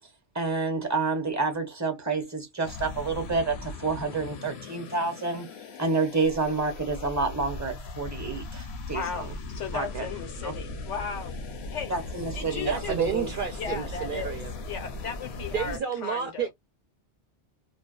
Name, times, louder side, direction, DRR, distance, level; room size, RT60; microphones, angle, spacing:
voice 1, 0.3-5.5 5.8-9.3 9.7-10.1 10.4-10.5 11.9-13.3, right 3 dB, 15° right, 0.7 m, -29 dB
sound 1, 2.6-15.8, left 2 dB, 65° left, 0.9 m, -38 dB
voice 2, 8.9-11.3 11.7-11.9 12.3-13.0 13.5-14.4 14.6-16.5, left 6 dB, 90° left, 1.2 m, -36 dB
voice 3, 12.6-14.5 15.5-16.5, right 7 dB, 55° right, 0.7 m, -31 dB
2.6 x 2.2 x 2.3 m
omnidirectional pair, 1.2 m